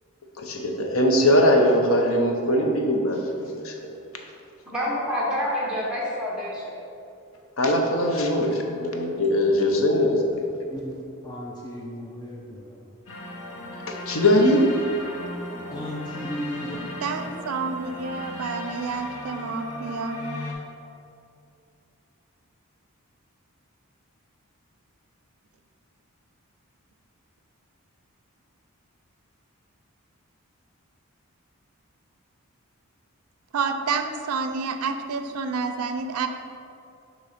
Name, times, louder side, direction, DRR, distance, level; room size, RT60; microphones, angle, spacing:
voice 1, 0.4-4.0 7.6-10.5 13.9-14.6, left 1 dB, 65° left, 2 dB, 0.7 m, -21 dB
voice 2, 4.7-6.7, left 1 dB, 5° right, -5 dB, 1.2 m, -27 dB
voice 3, 10.7-12.9 15.7-16.9, left 1 dB, 20° left, -3 dB, 0.5 m, -35 dB
sound 1, 13.1-20.5, left 1 dB, 90° left, 1.1 m, -36 dB
voice 4, 17.0-20.2 33.5-36.3, right 4 dB, 80° right, 7 dB, 0.4 m, -29 dB
6.3 x 3.1 x 5.7 m, 2.6 s
head